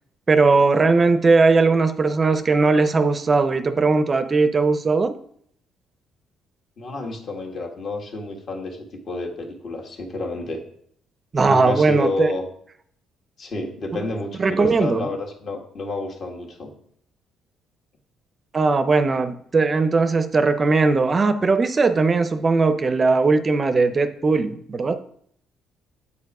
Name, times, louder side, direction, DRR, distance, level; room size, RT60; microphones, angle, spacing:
voice 1, 0.3-5.2 11.3-12.3 13.9-14.1 14.4-15.1 18.5-25.0, right 3 dB, 30° right, 10 dB, 0.5 m, -19 dB
voice 2, 6.8-10.6 11.4-12.4 13.4-16.7, left 2 dB, 50° left, 1 dB, 1.8 m, -30 dB
8.4 x 4.5 x 4.8 m, 0.63 s
cardioid pair, 115°, 0 cm